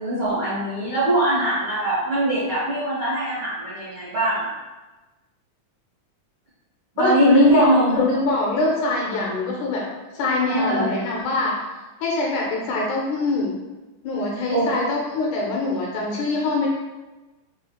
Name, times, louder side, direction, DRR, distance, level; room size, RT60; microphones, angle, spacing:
voice 1, 0.0-4.5 6.9-8.0 10.5-10.9 14.5-14.7, right 1 dB, 90° right, -11 dB, 0.9 m, -22 dB
voice 2, 7.0-9.8 10.1-11.5 12.0-13.5 14.0-16.7, left 3 dB, 80° left, -2 dB, 1.9 m, -22 dB
5.4 x 3.1 x 2.3 m, 1.1 s
omnidirectional pair, 3.8 m